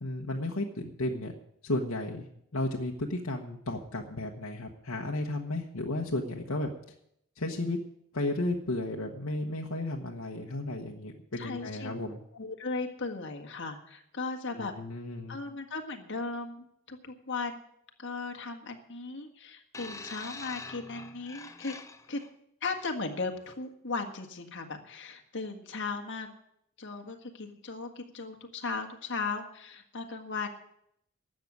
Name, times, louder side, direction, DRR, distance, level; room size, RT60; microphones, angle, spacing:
voice 1, 0.0-1.3 1.6-2.3 2.5-6.7 7.4-7.8 8.1-12.2 14.5-15.4, left 2 dB, 70° left, 0 dB, 1.2 m, -33 dB
voice 2, 11.4-11.9 12.3-14.7 15.3-17.6 18.0-21.8 22.1-22.2 22.6-26.3 26.8-30.5, left 4 dB, 55° left, 4 dB, 1.7 m, -37 dB
sound 1, 19.7-22.3 23.2-23.4, left 3 dB, 15° left, 0.6 m, -44 dB
12.5 x 7.6 x 9.5 m, 0.74 s
head